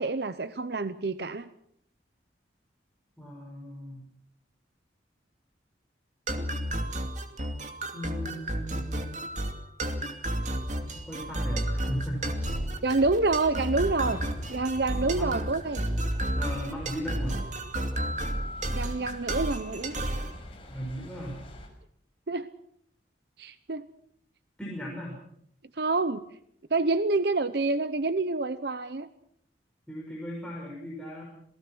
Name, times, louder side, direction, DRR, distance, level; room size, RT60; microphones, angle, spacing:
voice 1, 0.0-1.5 12.8-14.2 14.5-15.9 18.7-20.0 22.3-22.5 23.4-23.9 25.7-26.2 26.7-29.1, right 3 dB, 60° right, 13 dB, 0.8 m, -27 dB
voice 2, 3.2-4.0 7.9-9.2 10.9-12.3 15.1-15.4 16.4-17.4 20.7-21.4 24.6-25.2 29.9-31.2, equal, 5° left, -4 dB, 5.6 m, -37 dB
sound 1, 6.3-20.3, right 1 dB, 40° right, 2.6 m, -32 dB
sound 2, 10.4-21.7, equal, 30° left, 5.7 m, -43 dB
27.5 x 18.5 x 6.2 m, 0.71 s
head